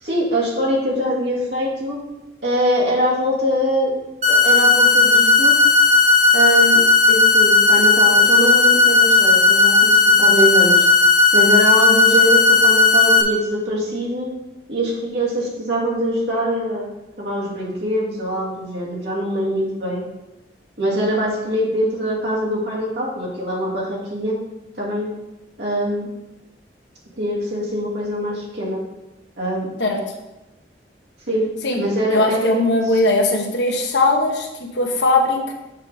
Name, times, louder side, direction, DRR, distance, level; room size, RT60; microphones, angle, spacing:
voice 1, 0.0-2.0 2.4-3.9 4.3-5.6 6.3-6.8 7.1-10.9 11.3-14.3 14.7-16.9 17.2-20.0 20.8-24.4 24.8-25.1 25.6-26.1 27.2-28.8 29.4-29.7 31.3-31.5 31.7-33.0, equal, 75° right, -4 dB, 2.2 m, -23 dB
sound 1, 4.2-13.2, left 3 dB, 40° right, 0.9 m, -14 dB
voice 2, 32.1-35.5, left 2 dB, 80° left, 2 dB, 1.2 m, -19 dB
7.2 x 4.9 x 4.0 m, 0.97 s
head